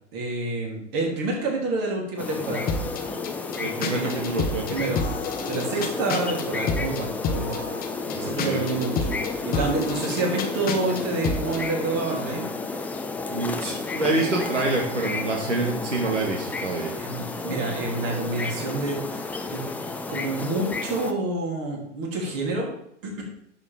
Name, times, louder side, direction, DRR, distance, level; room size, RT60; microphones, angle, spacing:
voice 1, 0.1-2.7 3.8-5.0 5.5-7.6 8.2-9.1 9.4-12.5 17.0-19.6 20.1-22.7 23.0-23.2, right 2 dB, 40° right, -1 dB, 3.4 m, -28 dB
sound 1, 2.2-21.1, left 3 dB, 5° left, 0.3 m, -32 dB
sound 2, 2.7-11.6, left 4 dB, 25° left, 1.0 m, -31 dB
voice 2, 3.6-5.0 5.5-5.9 8.1-8.6 13.3-16.9, right 2 dB, 90° right, -1 dB, 1.9 m, -27 dB
10.5 x 7.2 x 3.6 m, 0.70 s
hypercardioid pair, 100°, 36 cm